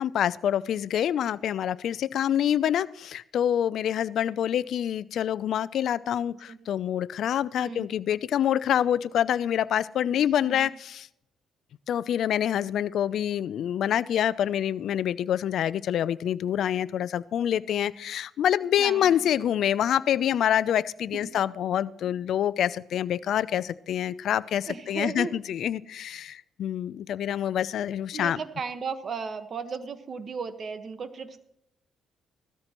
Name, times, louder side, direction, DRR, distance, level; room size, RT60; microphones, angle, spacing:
voice 1, 0.0-11.1 11.9-28.4, left 10 dB, 70° left, 17 dB, 0.4 m, -26 dB
voice 2, 10.1-10.7 18.8-19.3 21.1-21.3 24.7-25.3 28.1-31.4, right 5 dB, 50° right, 9 dB, 1.3 m, -36 dB
16.0 x 13.0 x 3.0 m, 0.78 s
cardioid pair, 90°, 0 cm